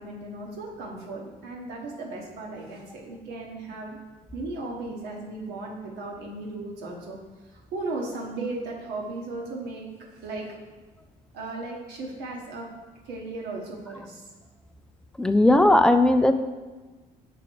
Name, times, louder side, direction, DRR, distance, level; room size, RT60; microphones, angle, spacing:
voice 1, 0.0-4.0 4.3-7.2 7.5-9.8 10.1-10.6 11.3-12.7 13.0-14.3, right 2 dB, 80° right, -1 dB, 1.3 m, -36 dB
voice 2, 15.2-16.3, left 1 dB, 5° left, 8 dB, 0.3 m, -17 dB
6.0 x 3.6 x 4.6 m, 1.3 s
cardioid pair, 110°, 17 cm